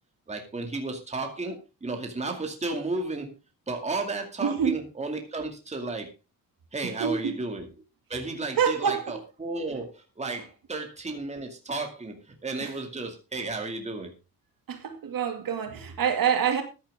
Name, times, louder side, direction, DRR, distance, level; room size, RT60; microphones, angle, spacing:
voice 1, 0.3-3.3 3.7-6.1 6.7-7.7 8.1-14.1, right 3 dB, 20° right, 2.3 m, -33 dB
voice 2, 4.4-4.8 7.0-7.3 8.6-9.2 12.6-12.7 14.7-16.6, right 7 dB, 65° right, 2.4 m, -26 dB
14.5 x 10.5 x 3.6 m
wide cardioid pair, 175°, 37 cm